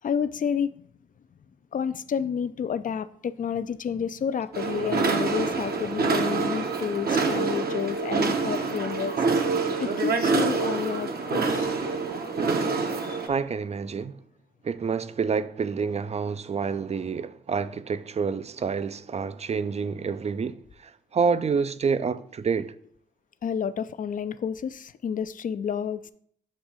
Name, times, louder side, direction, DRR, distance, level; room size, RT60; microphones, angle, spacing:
voice 1, 0.0-0.7 1.7-9.1 9.8-11.7 13.0-13.2 23.4-26.1, left 7 dB, 45° left, 0.4 m, -30 dB
sound 1, 4.5-13.3, right 4 dB, 50° right, 0.9 m, -26 dB
voice 2, 13.3-14.2 14.6-22.7, right 5 dB, 35° right, 0.4 m, -28 dB
7.4 x 2.6 x 4.9 m
hypercardioid pair, 40°, 20 cm